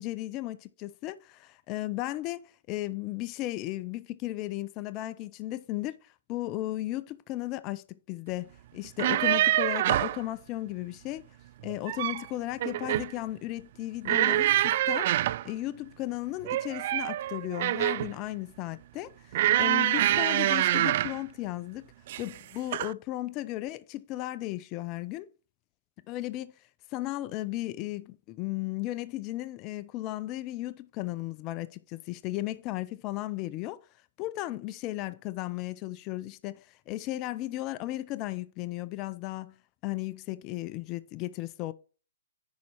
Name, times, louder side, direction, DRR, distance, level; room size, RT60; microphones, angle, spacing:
voice 1, 0.0-2.4 2.7-11.2 11.6-15.1 15.4-19.1 19.6-21.9 22.2-25.3 26.1-26.5 26.9-33.8 34.2-39.6 39.8-41.7, left 16 dB, 30° left, 0.6 m, -35 dB
sound 1, 8.8-10.2 11.6-12.3 12.6-13.1 14.0-15.5 16.4-18.1 19.3-21.2 22.1-22.4 22.7-22.9, right 14 dB, 50° right, 0.3 m, -26 dB
10.5 x 4.2 x 4.7 m
hypercardioid pair, 140°, 0 cm